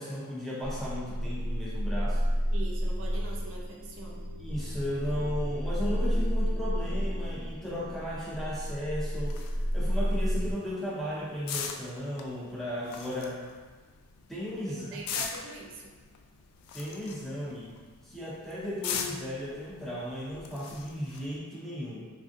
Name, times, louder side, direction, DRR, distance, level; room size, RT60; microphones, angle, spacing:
voice 1, 0.0-2.2 4.4-9.3 9.7-13.4 14.3-14.9 16.7-17.8 18.0-22.1, left 1 dB, ahead, -7 dB, 0.4 m, -35 dB
sound 1, 0.6-10.5, equal, 25° left, 0.8 m, -31 dB
voice 2, 2.5-4.3 14.7-16.0, right 3 dB, 60° right, -2 dB, 0.4 m, -43 dB
sound 2, 9.2-21.4, left 6 dB, 85° left, 0.3 m, -41 dB
3.3 x 2.5 x 2.5 m, 1.4 s
head